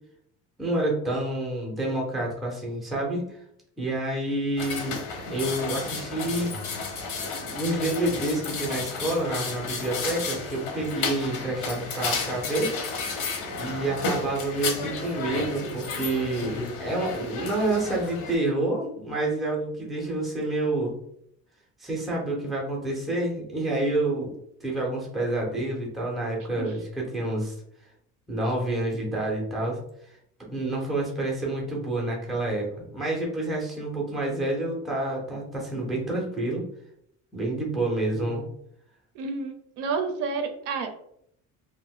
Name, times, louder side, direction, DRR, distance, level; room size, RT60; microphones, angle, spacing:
voice 1, 0.6-3.2 3.8-5.0 5.3-6.6 7.4-12.7 13.1-21.0 21.8-24.3 24.6-27.5 28.3-29.8 30.5-36.6 37.3-38.4, right 2 dB, ahead, -2 dB, 0.5 m, -28 dB
sound 1, 4.6-18.4, left 4 dB, 90° left, 0.8 m, -32 dB
voice 2, 39.1-40.9, right 4 dB, 70° right, 6 dB, 0.5 m, -30 dB
2.5 x 2.1 x 3.5 m, 0.71 s
cardioid pair, 180°, 32 cm